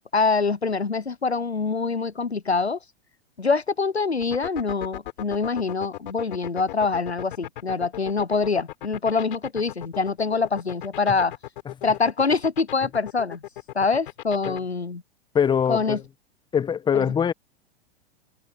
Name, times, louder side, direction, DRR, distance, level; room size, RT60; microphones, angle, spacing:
voice 1, 0.1-2.8 3.4-11.3 11.8-13.4 13.7-15.0 15.7-16.0 16.9-17.0, left 4 dB, 85° left, 0.9 m, -25 dB
sound 1, 4.2-14.6, left 14 dB, 55° left, 4.0 m, -36 dB
voice 2, 15.3-16.0 16.5-17.3, left 7 dB, 15° left, 1.3 m, -22 dB
figure-of-eight pair, 100°, 32 cm